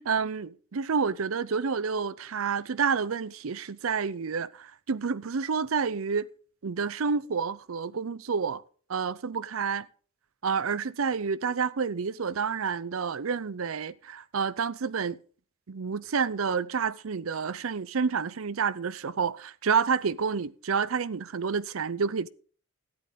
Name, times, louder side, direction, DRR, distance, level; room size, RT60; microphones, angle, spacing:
voice 1, 0.0-6.3 6.6-8.6 8.9-9.9 10.4-15.2 15.7-22.3, right 5 dB, 75° right, 0.6 m, -29 dB
13.5 x 11.0 x 3.7 m
head